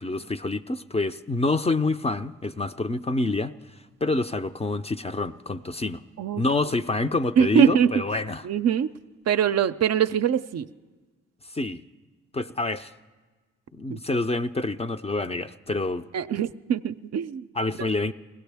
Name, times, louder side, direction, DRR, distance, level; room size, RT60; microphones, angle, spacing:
voice 1, 0.0-3.5 4.0-6.0 6.4-8.5 11.5-11.8 12.3-12.9 13.7-16.0 17.6-18.1, left 2 dB, 20° left, 9 dB, 0.5 m, -27 dB
voice 2, 7.4-7.9 8.4-8.9 9.3-10.7 13.9-14.0 16.1-17.5 17.8-17.9, right 8 dB, 55° right, 11 dB, 0.5 m, -23 dB
21.0 x 16.5 x 3.5 m, 1.3 s
supercardioid pair, 50°, 32 cm